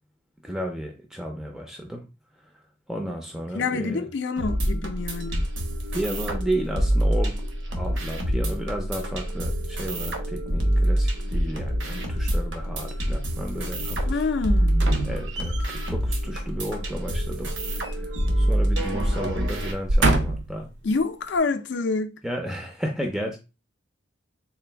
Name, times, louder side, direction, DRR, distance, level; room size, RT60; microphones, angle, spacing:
voice 1, 0.4-2.0 2.4-2.5 2.9-4.1 5.9-7.5 7.7-14.2 15.0-20.7 22.2-23.4, right 1 dB, ahead, 0.4 m, -33 dB
voice 2, 3.5-5.4 14.1-14.9 20.8-22.2, left 4 dB, 65° left, 0.4 m, -27 dB
sound 1, 4.4-19.7, right 1 dB, 80° right, 0.9 m, -26 dB
sound 2, 14.7-15.9 17.4-18.6 18.9-19.1 19.7-20.6 21.3-21.4, right 2 dB, 65° right, 0.6 m, -25 dB
3.8 x 2.5 x 3.3 m
head